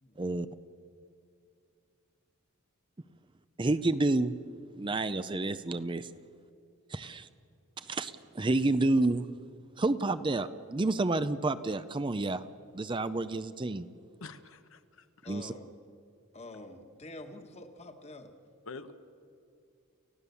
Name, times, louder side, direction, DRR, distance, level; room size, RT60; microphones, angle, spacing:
voice 1, 3.6-4.3 4.8-6.1 6.9-7.3 7.8-9.3 9.8-12.5 12.7-13.9 15.3-15.5, right 2 dB, 20° right, 12 dB, 0.5 m, -29 dB
voice 2, 14.2-15.3 18.6-18.9, left 3 dB, 65° left, 9 dB, 1.1 m, -47 dB
voice 3, 15.2-15.7 16.3-18.3, left 1 dB, 30° left, 6 dB, 1.5 m, -47 dB
29.5 x 15.5 x 7.0 m, 2.5 s
head